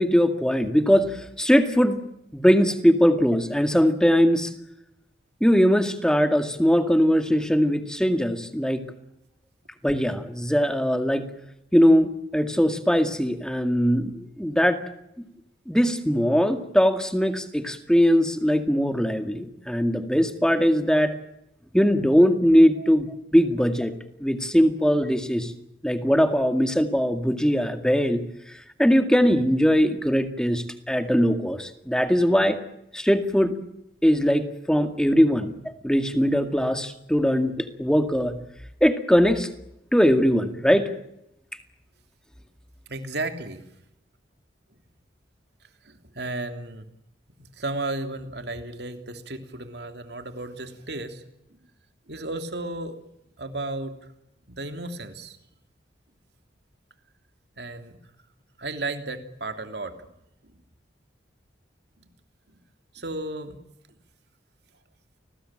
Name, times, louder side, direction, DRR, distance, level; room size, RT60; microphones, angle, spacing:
voice 1, 0.0-2.0 2.3-4.5 5.4-8.9 9.8-11.3 11.7-14.8 15.7-21.1 21.7-23.1 23.3-23.9 24.2-25.5 25.8-28.3 28.8-32.6 32.9-33.6 34.0-38.4 38.8-39.5 39.9-40.9, equal, 5° left, 7 dB, 2.1 m, -21 dB
voice 2, 42.9-43.6 45.8-46.9 47.4-51.2 52.1-53.0 53.4-54.0 54.5-55.4 57.6-58.0 58.6-60.1 60.4-60.6 62.0-62.1 62.9-63.6, right 2 dB, 60° right, 7 dB, 3.1 m, -34 dB
30.0 x 20.5 x 9.0 m, 0.83 s
head